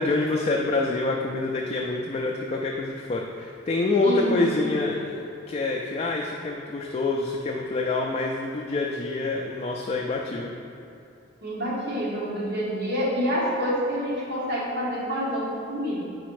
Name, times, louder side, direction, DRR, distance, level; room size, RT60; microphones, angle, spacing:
voice 1, 0.0-5.2 5.5-10.5, left 2 dB, 30° left, 0 dB, 0.3 m, -26 dB
voice 2, 4.0-4.7 11.4-16.0, equal, 55° right, -6 dB, 1.4 m, -27 dB
5.0 x 4.2 x 4.7 m, 2.6 s
head